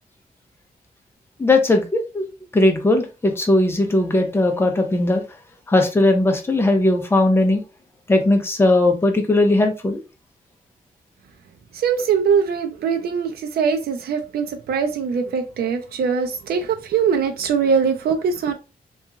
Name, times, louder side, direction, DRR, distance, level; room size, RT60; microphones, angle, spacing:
voice 1, 1.4-5.2 5.7-7.6 8.1-10.0, left 2 dB, 15° left, 0.6 m, -18 dB
voice 2, 11.7-18.5, right 6 dB, 85° right, 0.5 m, -22 dB
2.8 x 2.3 x 2.3 m
wide cardioid pair, 135°, 16 cm